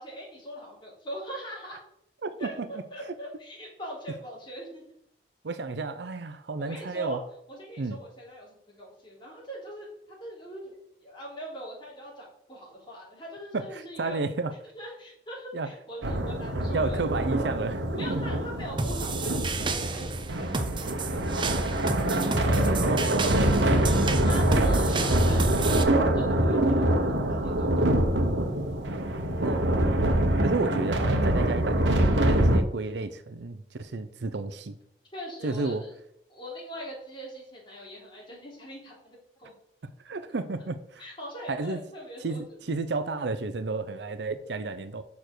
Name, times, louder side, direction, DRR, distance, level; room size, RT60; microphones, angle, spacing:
voice 1, 0.0-1.8 2.4-4.9 6.6-7.2 7.5-9.9 10.2-10.7 11.0-14.2 14.7-17.0 17.9-23.1 24.2-27.9 35.1-35.9 36.3-39.5 41.0-42.6, equal, 25° left, 3.6 m, -42 dB
voice 2, 2.2-2.7 5.4-7.2 7.8-8.0 13.5-14.5 15.5-15.7 16.7-18.4 22.9-23.9 29.4-29.7 30.4-34.8 35.4-35.8 40.0-41.0 41.5-41.8 42.2-45.0, right 3 dB, 70° right, 0.6 m, -32 dB
sound 1, 16.0-32.6, right 1 dB, 90° right, 1.2 m, -25 dB
sound 2, 18.8-25.8, right 3 dB, 25° right, 0.7 m, -32 dB
7.0 x 6.0 x 6.6 m
head